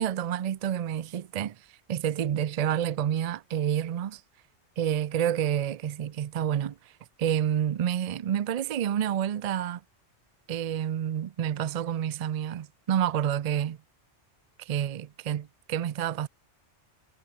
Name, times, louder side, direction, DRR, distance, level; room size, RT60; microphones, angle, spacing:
voice 1, 0.0-4.2 4.8-6.9 7.2-9.8 10.5-13.8 14.6-16.3, right 9 dB, 65° right, 0.3 m, -29 dB
omnidirectional pair, 1.2 m